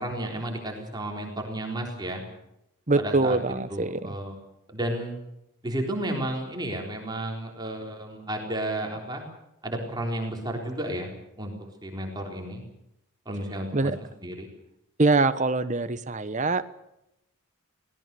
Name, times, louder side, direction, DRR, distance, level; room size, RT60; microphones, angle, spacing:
voice 1, 0.0-2.2 3.0-3.4 3.7-4.4 4.7-5.2 5.6-9.2 9.6-11.5 11.8-12.6 13.3-13.9 14.2-14.5, right 1 dB, 20° right, 1 dB, 4.0 m, -32 dB
voice 2, 2.9-4.1 13.7-14.0 15.0-16.6, right 3 dB, 35° right, 12 dB, 1.0 m, -24 dB
25.0 x 18.5 x 7.0 m, 0.85 s
head